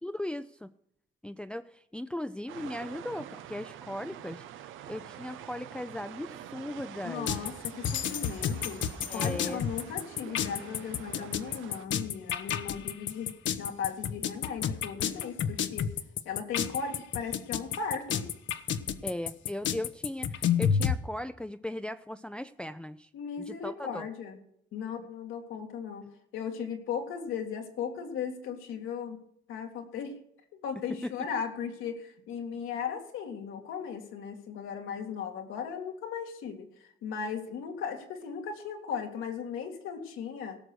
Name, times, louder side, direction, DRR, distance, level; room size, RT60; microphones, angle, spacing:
voice 1, 0.0-0.7 1.2-4.4 4.9-7.3 9.1-9.6 19.0-23.1 23.4-24.1 31.0-31.1, left 1 dB, 5° left, 10 dB, 0.5 m, -38 dB
sound 1, 2.5-11.9, right 11 dB, 90° right, 0.8 m, -46 dB
voice 2, 7.0-8.8 9.1-15.9 16.2-18.2 23.1-24.4 24.7-26.1 26.3-29.2 29.5-30.2 30.5-36.7 37.0-40.6, left 6 dB, 90° left, 3 dB, 2.3 m, -37 dB
sound 2, 7.3-21.0, left 8 dB, 70° left, 0.9 m, -30 dB
17.0 x 6.7 x 6.3 m, 0.72 s
cardioid pair, 90°, 20 cm